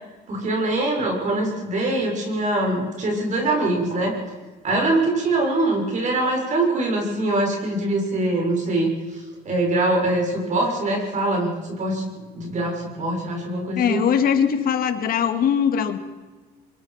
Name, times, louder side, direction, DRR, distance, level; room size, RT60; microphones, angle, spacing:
voice 1, 0.3-4.1 4.6-12.0 12.3-14.0, right 2 dB, 45° right, 1 dB, 6.4 m, -23 dB
voice 2, 13.7-16.0, left 8 dB, 60° left, 7 dB, 2.3 m, -21 dB
24.0 x 21.5 x 5.9 m, 1.4 s
cardioid pair, 110°, 17 cm